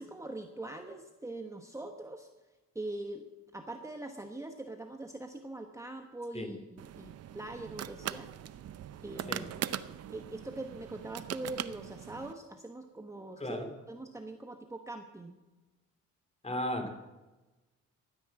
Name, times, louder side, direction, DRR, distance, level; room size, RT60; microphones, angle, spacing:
voice 1, 0.0-2.3 2.7-3.3 3.5-8.3 9.0-9.5 10.1-13.6 13.9-15.4, right 2 dB, 10° right, 4 dB, 1.1 m, -42 dB
sound 1, 6.8-12.3, right 10 dB, 55° right, 0.7 m, -41 dB
voice 2, 13.4-13.7 16.4-16.9, left 1 dB, 20° left, 6 dB, 2.9 m, -35 dB
13.5 x 9.7 x 7.6 m, 1.1 s
cardioid pair, 90°, 30 cm